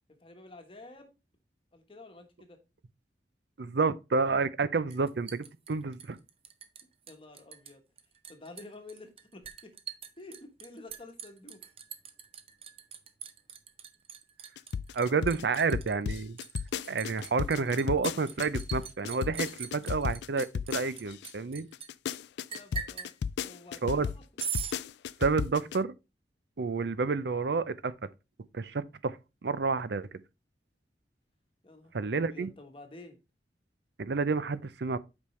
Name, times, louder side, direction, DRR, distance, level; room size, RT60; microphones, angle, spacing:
voice 1, 0.1-1.2 1.7-2.6 7.1-7.8 8.3-9.7 10.2-11.6 22.5-23.1 23.4-24.2 31.6-33.2, left 2 dB, 30° left, 1.2 m, -50 dB
voice 2, 3.6-6.2 14.9-16.4 16.9-21.7 23.8-24.1 25.2-25.9 26.6-28.1 28.5-29.2 29.4-30.1 31.9-32.5 34.0-35.0, right 4 dB, 70° right, 0.5 m, -29 dB
Liquid, 4.9-6.8 7.1-7.7 8.0-21.9 22.5-23.1 24.4-24.8, right 7 dB, 35° right, 0.7 m, -41 dB
sound 1, 14.6-21.3 21.7-25.8, left 7 dB, 75° left, 0.3 m, -34 dB
8.3 x 5.3 x 3.2 m
head